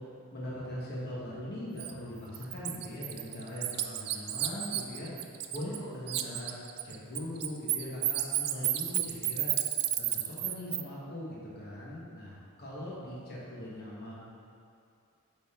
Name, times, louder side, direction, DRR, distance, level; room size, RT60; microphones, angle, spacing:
voice 1, 0.3-6.6 6.8-9.5 10.0-14.1, left 1 dB, 45° left, -7 dB, 1.6 m, -41 dB
Bird, 1.8-1.9 2.3-5.8 6.1-10.8, right 13 dB, 45° right, 0.3 m, -31 dB
8.5 x 4.3 x 3.8 m, 2.5 s
head